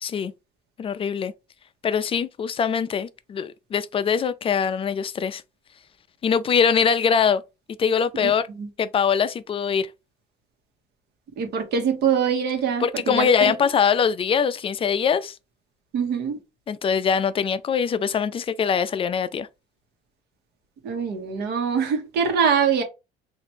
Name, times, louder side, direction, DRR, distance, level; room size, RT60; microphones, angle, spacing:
voice 1, 0.0-0.3 0.8-1.3 1.8-5.4 6.2-7.4 7.8-8.4 8.8-9.9 12.8-15.4 16.7-19.5, left 7 dB, 35° left, 0.3 m, -22 dB
voice 2, 11.4-13.6 15.9-16.4 20.8-22.8, right 7 dB, 75° right, 1.1 m, -23 dB
3.1 x 2.5 x 4.2 m
cardioid pair, 110°, 17 cm